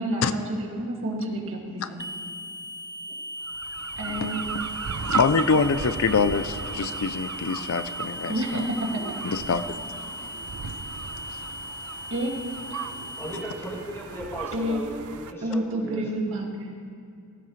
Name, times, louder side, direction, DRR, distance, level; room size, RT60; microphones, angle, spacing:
voice 1, 0.0-2.1 4.0-4.4 8.3-8.9 12.1-12.3 12.7-12.8 14.5-14.8 15.4-16.7, right 1 dB, 60° right, -1 dB, 2.2 m, -29 dB
sound 1, 2.0-13.4, equal, 15° right, 0.3 m, -37 dB
sound 2, 3.5-15.3, right 7 dB, 75° right, 0.5 m, -36 dB
voice 2, 5.0-8.3 9.2-9.8, left 5 dB, 65° left, 12 dB, 0.5 m, -24 dB
voice 3, 12.8-16.0, right 1 dB, 10° left, -4 dB, 2.5 m, -36 dB
17.5 x 16.0 x 3.2 m, 2.4 s
head